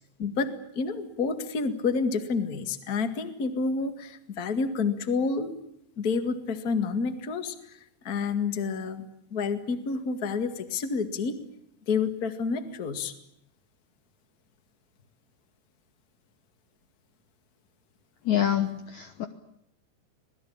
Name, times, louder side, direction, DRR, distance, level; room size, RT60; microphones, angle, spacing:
voice 1, 0.2-5.5 6.0-9.0 9.3-11.3 11.9-13.1, left 4 dB, 50° left, 8 dB, 1.1 m, -29 dB
voice 2, 18.2-19.2, left 10 dB, 90° left, 7 dB, 1.6 m, -26 dB
26.5 x 19.5 x 8.8 m, 0.77 s
omnidirectional pair, 5.2 m